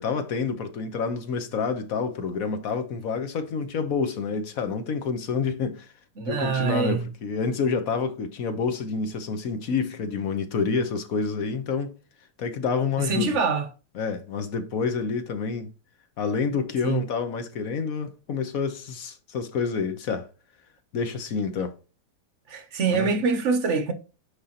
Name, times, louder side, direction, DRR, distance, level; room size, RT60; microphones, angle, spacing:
voice 1, 0.0-5.9 6.3-11.9 12.4-13.3 13.9-15.7 16.2-20.3 20.9-21.7 22.9-23.1, left 5 dB, 60° left, 1.3 m, -28 dB
voice 2, 6.2-7.0 13.0-13.7 16.8-17.0 22.5-23.9, right 4 dB, 55° right, 1.0 m, -25 dB
9.8 x 3.8 x 2.9 m
omnidirectional pair, 1.8 m